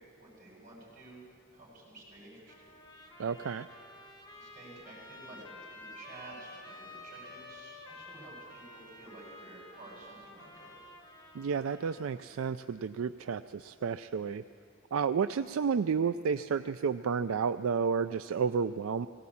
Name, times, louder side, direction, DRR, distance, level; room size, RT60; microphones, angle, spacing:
voice 1, 0.2-1.2 1.5-2.7 4.3-10.8, right 1 dB, 40° right, -4 dB, 7.6 m, -51 dB
Trumpet, 2.5-12.2, left 1 dB, 20° left, 2.6 m, -51 dB
voice 2, 3.2-3.7 11.3-14.4 14.9-19.1, right 6 dB, 85° right, 11 dB, 0.4 m, -31 dB
19.0 x 17.5 x 8.5 m, 2.4 s
head